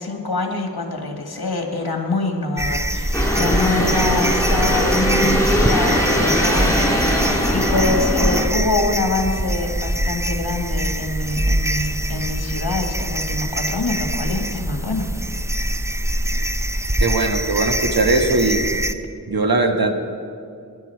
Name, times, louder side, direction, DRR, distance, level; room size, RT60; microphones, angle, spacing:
voice 1, 0.0-15.1, left 2 dB, 75° left, 3 dB, 1.7 m, -25 dB
sound 1, 2.6-18.9, right 1 dB, 10° right, 0.7 m, -23 dB
sound 2, 3.1-8.5, equal, 10° left, 2.1 m, -21 dB
voice 2, 17.0-18.7 19.3-19.9, right 2 dB, 70° right, 5 dB, 1.4 m, -19 dB
19.5 x 11.0 x 4.6 m, 2.5 s
wide cardioid pair, 40°, 37 cm